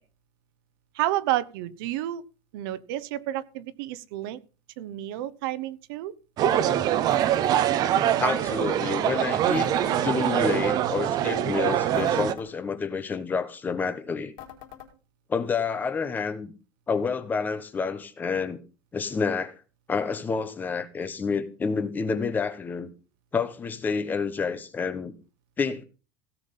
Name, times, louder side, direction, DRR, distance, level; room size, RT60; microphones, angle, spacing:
voice 1, 0.9-2.2 2.5-4.4 4.8-6.1, right 14 dB, 70° right, 1.0 m, -30 dB
sound 1, 6.4-12.3, right 11 dB, 35° right, 0.9 m, -24 dB
sound 2, 7.1-7.6 9.5-10.1 11.9-12.5 14.4-14.9, left 11 dB, 60° left, 4.0 m, -44 dB
voice 2, 8.2-9.7 10.0-14.3 15.3-16.5 16.9-18.6 18.9-19.6 19.9-22.9 23.3-25.1 25.6-25.8, left 5 dB, 15° left, 1.1 m, -29 dB
17.0 x 7.5 x 5.6 m
cardioid pair, 180°, 12 cm